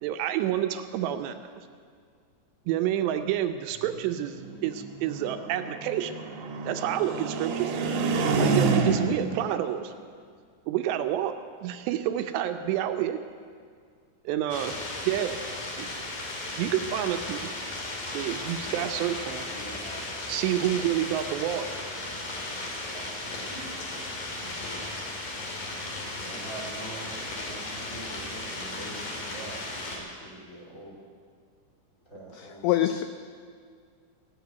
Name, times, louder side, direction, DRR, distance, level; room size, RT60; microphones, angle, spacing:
voice 1, 0.0-1.5 2.7-6.2 6.7-7.8 8.4-9.9 10.7-13.2 14.3-14.7 15.1-15.4 15.8-15.9 16.6-17.5 18.1-19.5 20.3-21.7, right 11 dB, 80° right, 7 dB, 2.7 m, -28 dB
sound 1, 3.9-9.3, right 4 dB, 65° right, 2.2 m, -28 dB
sound 2, 14.5-30.0, left 2 dB, 50° left, 3.7 m, -36 dB
voice 2, 19.5-20.2 22.8-24.0 26.0-31.0 32.1-32.7, right 2 dB, 25° left, -2 dB, 1.7 m, -44 dB
voice 3, 32.3-33.0, left 13 dB, 85° left, 9 dB, 2.2 m, -25 dB
18.5 x 7.6 x 9.3 m, 2.1 s
omnidirectional pair, 5.2 m